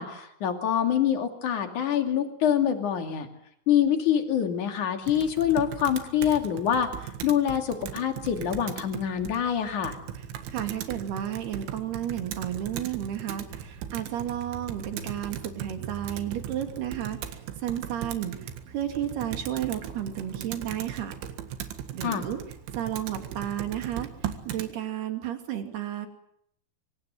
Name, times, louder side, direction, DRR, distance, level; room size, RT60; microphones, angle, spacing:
voice 1, 0.0-3.3 3.7-10.0 22.0-22.3, left 9 dB, 45° left, 6 dB, 3.4 m, -25 dB
Computer keyboard, 5.1-24.7, right 10 dB, 85° right, 4.2 m, -38 dB
voice 2, 10.2-21.1 21.9-22.4 22.8-24.1 24.5-26.1, right 11 dB, 60° right, 6 dB, 4.4 m, -32 dB
26.0 x 25.0 x 7.7 m, 0.72 s
omnidirectional pair, 5.5 m